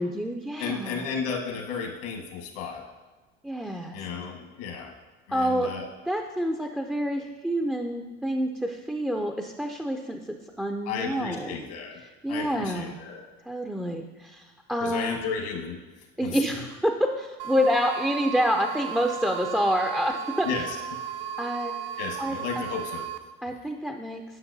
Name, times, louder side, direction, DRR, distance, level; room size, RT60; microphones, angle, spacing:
voice 1, 0.0-1.1 3.4-4.0 5.3-5.7 6.1-11.7 12.2-13.0 13.5-15.2 16.2-20.5 21.4-21.7 22.2-22.6 23.4-24.2, equal, 5° right, 3 dB, 0.4 m, -28 dB
voice 2, 0.6-2.8 3.9-4.9 5.3-5.9 10.8-12.0 12.3-13.2 14.8-15.8 16.2-16.4 20.4-20.8 22.0-23.1, left 6 dB, 70° left, 2 dB, 1.4 m, -33 dB
sound 1, 17.4-23.2, right 10 dB, 80° right, 0.5 m, -35 dB
10.0 x 5.7 x 2.7 m, 1.2 s
hypercardioid pair, 85°, 30 cm